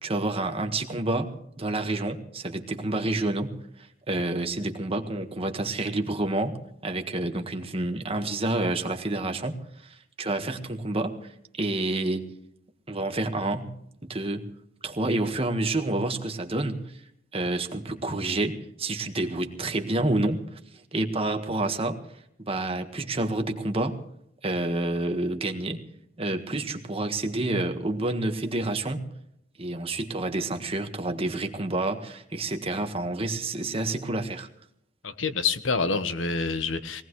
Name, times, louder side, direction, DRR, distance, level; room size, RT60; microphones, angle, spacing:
voice 1, 0.0-11.3 11.6-12.2 12.9-13.7 14.0-14.5 14.8-16.8 17.3-20.4 20.9-22.0 22.4-24.0 24.4-25.8 26.2-29.1 29.6-34.5, right 2 dB, 30° right, 5 dB, 1.6 m, -29 dB
voice 2, 35.0-37.0, left 4 dB, 90° left, 11 dB, 1.2 m, -27 dB
21.5 x 18.0 x 3.2 m, 0.72 s
head